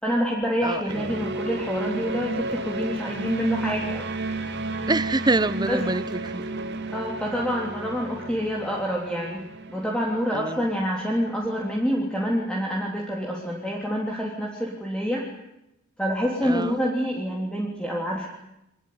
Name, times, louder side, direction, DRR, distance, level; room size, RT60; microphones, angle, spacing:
voice 1, 0.0-4.1 5.7-5.8 6.9-9.4 9.7-15.3 16.0-18.3, equal, 5° left, 3.3 m, -27 dB
voice 2, 0.6-1.1 4.9-6.5 10.3-10.7 16.4-16.8, right 2 dB, 20° right, 0.9 m, -26 dB
sound 1, 0.9-12.2, right 2 dB, 55° right, 2.4 m, -33 dB
24.5 x 20.5 x 9.6 m
head